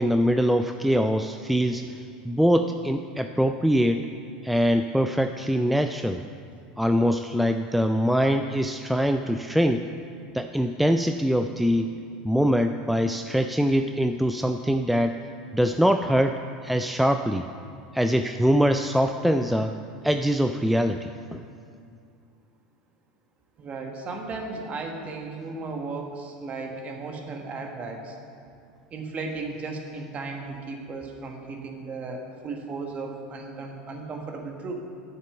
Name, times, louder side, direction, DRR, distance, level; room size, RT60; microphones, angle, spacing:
voice 1, 0.0-4.0 4.4-6.2 6.8-9.9 10.3-11.9 12.2-15.2 15.5-17.4 17.9-19.8 20.0-21.4, equal, ahead, 7 dB, 0.3 m, -23 dB
voice 2, 23.6-28.2 28.9-34.7, right 3 dB, 35° right, 2 dB, 1.5 m, -35 dB
7.6 x 6.6 x 7.8 m, 2.4 s
hypercardioid pair, 95°, 4 cm